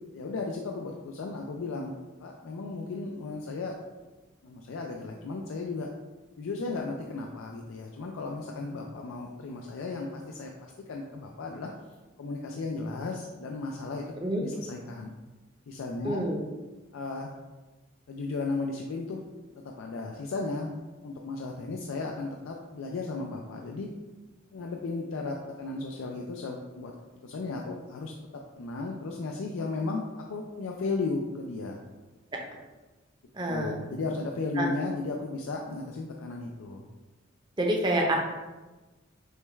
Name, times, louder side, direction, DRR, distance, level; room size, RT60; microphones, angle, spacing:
voice 1, 0.1-3.7 4.4-5.9 6.4-11.7 12.2-14.0 14.4-15.1 15.7-16.2 16.9-17.3 18.1-19.2 19.8-20.7 21.0-23.9 24.5-26.9 27.2-28.1 28.6-31.8 33.5-36.8, left 3 dB, 85° left, 0 dB, 0.4 m, -35 dB
voice 2, 16.0-16.4 32.3-32.4 33.3-33.7 34.6-34.7 37.6-38.2, right 1 dB, 20° right, 0 dB, 0.6 m, -27 dB
6.4 x 2.3 x 3.1 m, 1.2 s
head